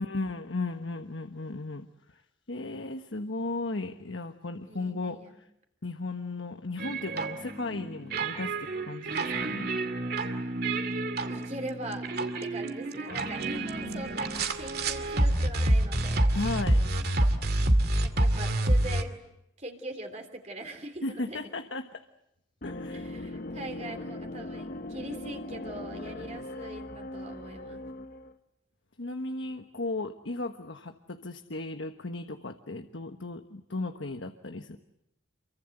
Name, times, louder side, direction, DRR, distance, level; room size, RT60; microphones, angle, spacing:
voice 1, 0.0-2.2 2.5-5.2 5.8-9.8 13.1-14.1 16.3-16.8 21.0-22.0 22.6-23.3 29.0-34.8, left 2 dB, 75° left, 7 dB, 1.3 m, -36 dB
voice 2, 4.6-5.3 11.3-12.1 12.4-16.3 18.0-19.2 19.6-21.5 22.9-27.8, right 1 dB, 35° right, 4 dB, 3.4 m, -41 dB
sound 1, 6.8-19.0, right 1 dB, 50° right, 2.4 m, -28 dB
sound 2, 22.6-28.3, left 1 dB, 45° left, 1.1 m, -39 dB
28.5 x 24.0 x 8.0 m, 0.82 s
head